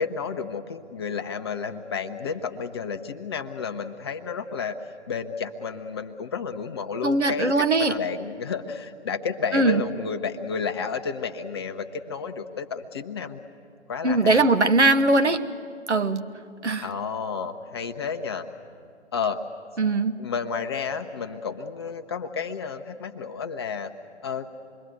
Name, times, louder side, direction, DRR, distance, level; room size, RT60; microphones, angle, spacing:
voice 1, 0.0-4.8 5.1-13.4 13.9-14.4 16.8-18.5 19.1-19.4 20.2-23.9 24.2-24.5, left 5 dB, 25° left, 6 dB, 0.7 m, -31 dB
voice 2, 7.0-7.9 9.5-9.8 14.0-15.4 15.9-16.3 16.6-16.9 19.8-20.2, right 2 dB, 80° right, 9 dB, 1.3 m, -20 dB
26.5 x 22.0 x 9.3 m, 2.3 s
figure-of-eight pair, 140°, 34 cm